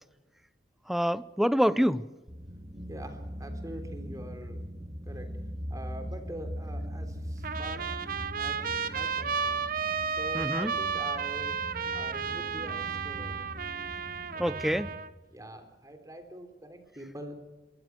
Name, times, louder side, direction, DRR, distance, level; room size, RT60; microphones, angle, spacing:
voice 1, 0.9-2.1 10.3-10.7 14.4-14.9, equal, ahead, 0.6 m, -26 dB
sound 1, 2.3-14.9, equal, 40° right, 3.1 m, -41 dB
voice 2, 2.9-4.6 5.0-5.3 5.7-7.9 8.3-9.6 10.0-11.6 11.9-13.3 14.3-14.7 15.3-17.4, right 1 dB, 20° right, 3.6 m, -44 dB
Trumpet, 7.4-15.1, right 6 dB, 55° right, 1.1 m, -33 dB
23.0 x 22.5 x 6.1 m
head